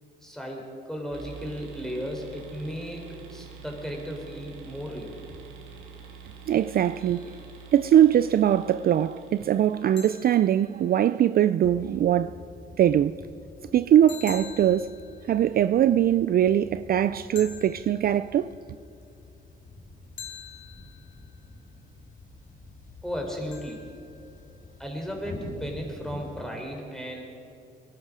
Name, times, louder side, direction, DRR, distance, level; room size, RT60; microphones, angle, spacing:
voice 1, 0.2-3.0 3.3-5.4 23.0-23.8 24.8-27.2, equal, 5° left, 3.9 m, -35 dB
sound 1, 1.1-10.6, right 6 dB, 80° right, 2.6 m, -46 dB
voice 2, 6.5-7.3 7.7-12.4 12.8-13.1 13.7-14.9 15.3-18.5, right 10 dB, 50° right, 0.4 m, -21 dB
sound 2, 7.0-7.7 10.0-11.4 14.1-15.8 17.3-18.7 20.2-21.5 23.5-24.7, left 7 dB, 70° left, 2.2 m, -47 dB
sound 3, 11.6-26.4, left 2 dB, 45° left, 3.6 m, -47 dB
22.5 x 12.0 x 5.0 m
cardioid pair, 90°, 20 cm